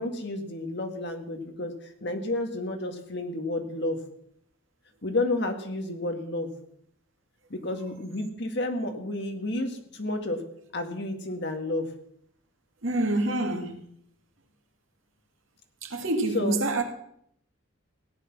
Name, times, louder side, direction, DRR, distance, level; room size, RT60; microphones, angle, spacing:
voice 1, 0.0-4.0 5.0-6.5 7.5-10.4 10.7-11.9 16.3-16.6, left 2 dB, 55° left, 1.9 m, -31 dB
voice 2, 12.8-13.9 15.8-16.8, right 2 dB, 70° right, 2.2 m, -27 dB
17.0 x 10.5 x 6.1 m
head